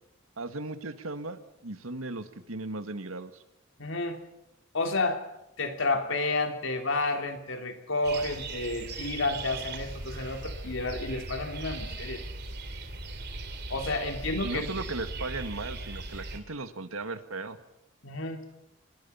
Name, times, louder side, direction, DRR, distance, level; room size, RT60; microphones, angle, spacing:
voice 1, 0.4-3.3 14.4-17.6, right 2 dB, 85° right, 9 dB, 1.9 m, -36 dB
voice 2, 3.8-4.2 4.7-5.2 5.6-12.2 13.7-14.7 18.0-18.4, left 2 dB, 65° left, 5 dB, 3.2 m, -30 dB
sound 1, 8.0-16.4, right 2 dB, 55° right, 3.0 m, -38 dB
26.5 x 22.0 x 5.8 m, 0.90 s
head